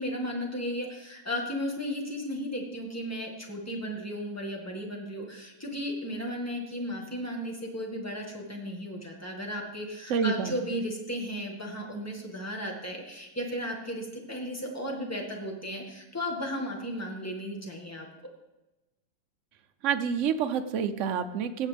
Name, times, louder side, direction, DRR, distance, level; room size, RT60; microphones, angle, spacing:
voice 1, 0.0-18.1, equal, 10° left, 0 dB, 1.5 m, -35 dB
voice 2, 10.1-10.5 19.8-21.7, right 7 dB, 80° right, 8 dB, 0.6 m, -28 dB
16.5 x 7.3 x 3.4 m, 1.0 s
omnidirectional pair, 2.0 m